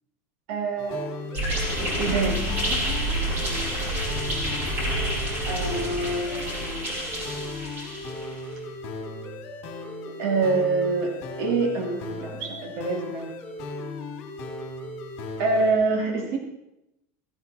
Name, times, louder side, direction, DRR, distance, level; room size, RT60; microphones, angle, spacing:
voice 1, 0.5-1.2 1.8-2.4 5.4-6.6 10.1-13.3 15.4-16.4, right 3 dB, 55° right, 1 dB, 2.7 m, -26 dB
sound 1, 0.8-15.7, left 2 dB, 45° left, 2.5 m, -37 dB
sound 2, 1.3-8.4, right 1 dB, 30° right, 3.7 m, -28 dB
16.5 x 11.0 x 4.3 m, 0.88 s
supercardioid pair, 170°, 8 cm